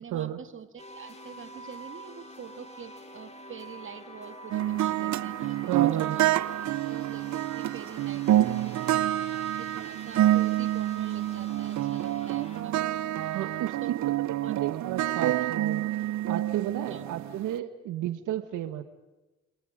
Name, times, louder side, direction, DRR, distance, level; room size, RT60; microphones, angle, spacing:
voice 1, 0.0-6.3 6.9-13.0 13.8-14.6 16.9-17.0, right 7 dB, 40° right, 9 dB, 2.1 m, -45 dB
sound 1, 0.8-12.6, equal, 20° left, 5.2 m, -47 dB
sound 2, 4.5-17.5, right 13 dB, 65° right, 0.8 m, -27 dB
voice 2, 5.7-6.2 13.2-13.8 14.0-14.1 14.5-15.8 16.3-18.8, right 12 dB, 85° right, 10 dB, 1.5 m, -33 dB
30.0 x 26.5 x 5.1 m, 1.1 s
cardioid pair, 90°, 30 cm